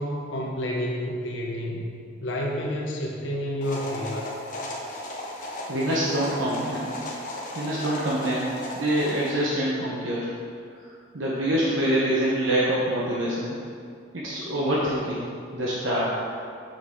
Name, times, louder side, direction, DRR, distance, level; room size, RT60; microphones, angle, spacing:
voice 1, 0.0-1.9 2.2-4.3, equal, 85° left, -1 dB, 1.1 m, -29 dB
sound 1, 3.6-9.3, left 1 dB, 40° left, 1.1 m, -36 dB
voice 2, 5.7-6.9 7.5-10.3 11.1-13.5 14.1-15.2 15.5-16.1, right 1 dB, 90° right, -5 dB, 1.0 m, -25 dB
7.6 x 6.5 x 3.7 m, 2.3 s
head